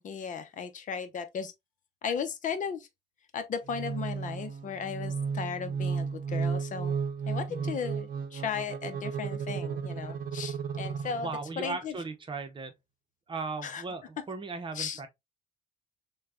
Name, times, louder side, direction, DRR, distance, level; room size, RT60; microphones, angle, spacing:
voice 1, 0.0-1.5 2.0-2.9 3.3-6.9 7.3-11.3 11.6-11.9 13.6-13.8 14.7-15.0, left 6 dB, 50° left, 0.8 m, -36 dB
sound 1, 3.7-11.6, right 6 dB, 55° right, 0.7 m, -34 dB
voice 2, 7.5-7.8 11.2-12.7 13.3-15.1, right 4 dB, 30° right, 0.8 m, -37 dB
6.4 x 2.3 x 2.4 m
cardioid pair, 110°, 17 cm